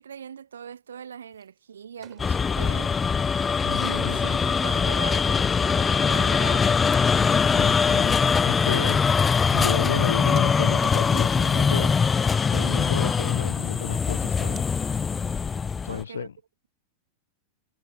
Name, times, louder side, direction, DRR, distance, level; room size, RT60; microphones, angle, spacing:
voice 1, 0.0-2.9 3.7-6.8 15.9-16.3, right 8 dB, 70° right, 1.1 m, -40 dB
sound 1, 1.3-1.6 1.9-3.0 3.4-9.7 10.1-11.4 11.8-11.9 12.1-13.7 14.2-14.7, right 9 dB, 25° right, 5.3 m, -55 dB
sound 2, 2.2-16.0, left 5 dB, 15° left, 0.3 m, -22 dB
voice 2, 3.6-4.2 7.2-9.0 9.5-12.0 12.5-14.7 15.8-16.3, left 8 dB, 65° left, 0.6 m, -32 dB
figure-of-eight pair, 90°, 0 cm